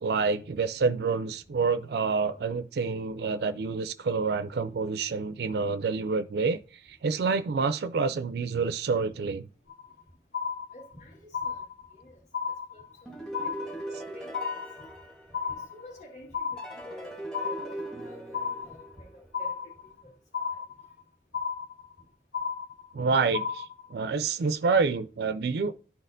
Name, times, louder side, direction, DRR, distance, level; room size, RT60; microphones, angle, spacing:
voice 1, 0.0-9.5 22.9-25.7, right 4 dB, 65° right, 0.3 m, -28 dB
sound 1, 9.7-10.0 10.3-11.0 11.3-12.0 12.3-13.0 13.3-14.0 14.3-15.0 15.3-16.0 16.3-17.0 17.3-18.0 18.3-19.0 19.3-20.0 20.3-21.0 21.3-22.0 22.3-23.0 23.3-24.0, left 6 dB, 70° left, 0.6 m, -34 dB
voice 2, 10.7-11.7 11.9-12.2 12.7-13.5 14.1-14.5 14.8-14.9 15.5-19.7 20.0-20.1 20.4-20.6, equal, 40° left, 1.8 m, -50 dB
sound 2, 13.1-15.9 16.6-19.4, right 1 dB, 5° left, 1.2 m, -40 dB
12.0 x 4.1 x 2.6 m
head